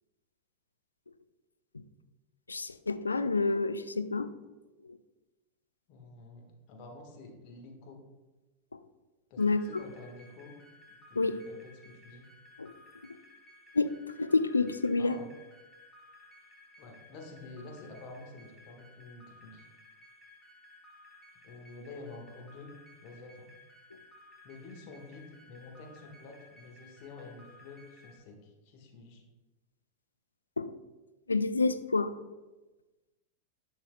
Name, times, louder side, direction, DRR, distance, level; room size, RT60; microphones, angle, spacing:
voice 1, 2.5-4.3 9.4-9.7 11.2-11.4 12.6-12.7 13.0-13.1 13.7-13.9 14.2-15.2 30.6-30.8 31.3-32.1, left 3 dB, 80° left, 11 dB, 0.3 m, -28 dB
voice 2, 5.9-8.0 9.3-10.5 10.9-12.3 15.0-15.3 16.8-19.6 21.4-22.7 23.0-23.5 24.4-29.2, left 3 dB, 45° left, 2 dB, 1.4 m, -49 dB
sound 1, 9.4-28.2, left 2 dB, 5° left, 1.8 m, -57 dB
10.5 x 5.7 x 2.2 m, 1.1 s
figure-of-eight pair, 90°, 0 cm